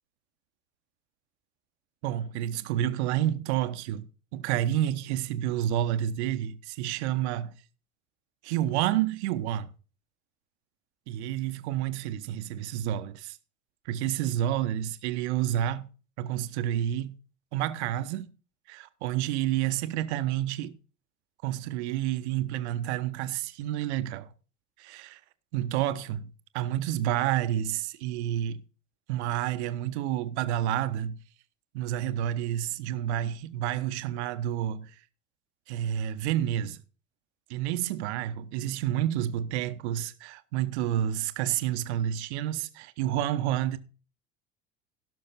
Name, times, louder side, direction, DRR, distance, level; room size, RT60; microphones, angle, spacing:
voice 1, 2.0-7.5 8.4-9.7 11.1-13.4 13.9-15.9 16.2-17.2 17.5-18.3 18.7-20.7 21.4-24.3 24.8-25.2 25.5-28.6 29.1-31.2 31.7-34.9 35.7-36.8 37.5-43.8, right 12 dB, 55° right, 1.1 m, -29 dB
17.0 x 6.4 x 4.1 m
figure-of-eight pair, 70°, 40 cm